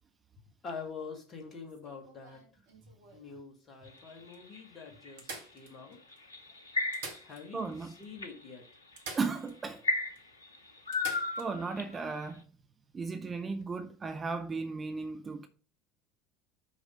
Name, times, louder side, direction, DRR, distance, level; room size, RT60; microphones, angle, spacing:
voice 1, 0.6-2.4 3.1-6.0 7.2-8.7, left 5 dB, 35° left, 2.4 m, -45 dB
sound 1, 1.7-3.3 4.0-4.1 4.3-4.4 5.2-6.2 6.8-7.8 8.0-8.1 9.0-9.8 10.1-10.2 10.9-11.5 13.5-13.6, right 3 dB, 65° right, 1.5 m, -46 dB
sound 2, 3.9-5.1 6.1-7.4 7.8-8.3 9.0-9.2 9.8-12.0, left 3 dB, 80° left, 0.8 m, -34 dB
voice 2, 7.5-7.9 9.1-9.8 11.4-12.4 12.9-15.5, right 4 dB, 25° right, 0.8 m, -35 dB
6.4 x 4.8 x 5.4 m
figure-of-eight pair, 65°, 0 cm